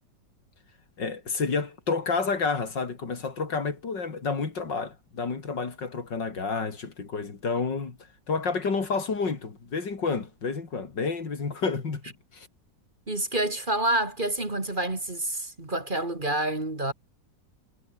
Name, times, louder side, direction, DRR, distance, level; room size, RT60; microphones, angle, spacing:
voice 1, 1.0-8.0 8.3-12.0 12.3-12.5, left 4 dB, 75° left, 3.8 m, -30 dB
voice 2, 13.1-16.9, right 1 dB, 25° right, 2.8 m, -28 dB
omnidirectional pair, 1.9 m